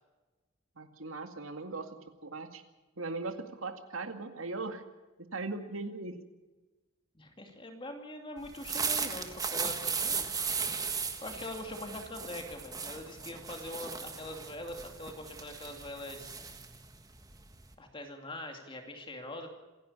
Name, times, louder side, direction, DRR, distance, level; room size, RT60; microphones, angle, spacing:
voice 1, 0.8-2.6 3.0-4.8 5.3-6.1, right 3 dB, 85° right, 7 dB, 2.2 m, -39 dB
voice 2, 7.1-10.4 11.2-16.3 17.8-19.5, left 1 dB, 25° left, 4 dB, 2.6 m, -43 dB
sound 1, 8.4-17.7, right 5 dB, 15° right, 1.6 m, -36 dB
27.0 x 11.0 x 8.6 m, 1.1 s
head